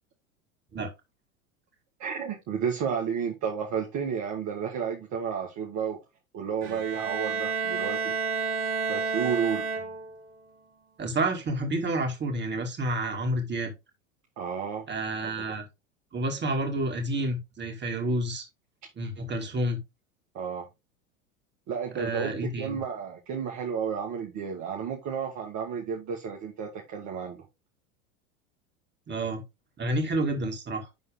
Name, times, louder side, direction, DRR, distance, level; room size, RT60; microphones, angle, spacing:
voice 1, 2.0-6.0 6.3-8.1 8.9-9.6 14.4-14.9 20.3-20.7 21.7-27.4, right 7 dB, 40° right, 1.9 m, -32 dB
Bowed string instrument, 6.6-10.3, right 5 dB, 65° right, 3.2 m, -30 dB
voice 2, 11.0-13.7 14.9-15.6 16.1-18.4 19.0-19.8 21.9-22.8 29.1-29.4 29.8-30.9, right 1 dB, 25° right, 2.9 m, -29 dB
11.0 x 3.9 x 3.7 m
hypercardioid pair, 90°, 43 cm